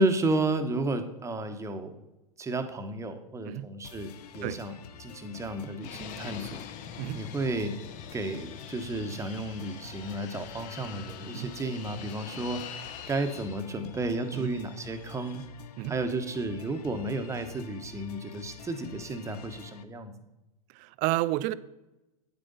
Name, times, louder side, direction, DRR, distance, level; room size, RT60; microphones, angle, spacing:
voice 1, 0.0-2.0 2.4-6.6 7.1-7.7 8.1-12.6 13.1-15.4 15.9-20.1, right 2 dB, 15° right, 1.0 m, -32 dB
sound 1, 3.8-19.8, left 7 dB, 75° left, 0.7 m, -48 dB
Fixed-wing aircraft airplane, 5.8-13.6, left 9 dB, 40° left, 0.8 m, -44 dB
voice 2, 20.7-21.5, right 16 dB, 40° right, 0.5 m, -31 dB
9.1 x 7.9 x 4.0 m
hypercardioid pair, 105°, 20 cm